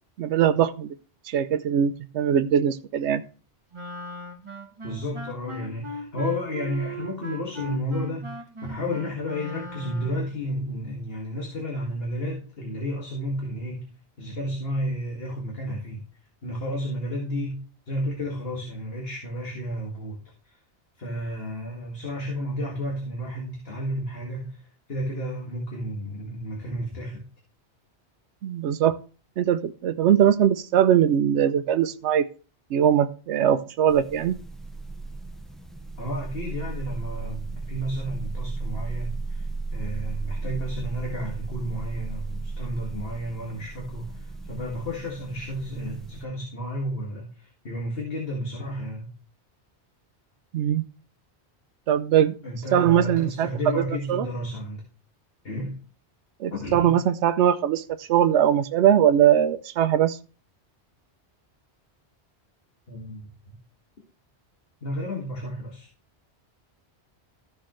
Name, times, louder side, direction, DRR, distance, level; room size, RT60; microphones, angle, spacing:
voice 1, 0.2-0.9 1.3-3.2 28.4-29.0 29.4-32.3 32.7-34.4 50.5-50.8 51.9-52.3 52.7-53.5 53.8-53.9 54.1-54.3 56.4-60.2, right 10 dB, 85° right, 10 dB, 0.9 m, -21 dB
Wind instrument woodwind instrument, 3.7-10.3, right 1 dB, 30° right, 1.1 m, -38 dB
voice 2, 4.8-13.9 14.2-16.0 16.4-20.2 20.4-20.6 21.0-27.2 36.0-49.1 52.4-54.8 55.4-55.8 56.5-57.0 62.9-63.6 64.8-65.9, equal, 60° left, -2 dB, 2.2 m, -32 dB
sound 1, 33.9-46.2, right 3 dB, ahead, 0.6 m, -35 dB
14.0 x 6.4 x 3.1 m, 0.38 s
omnidirectional pair, 1.1 m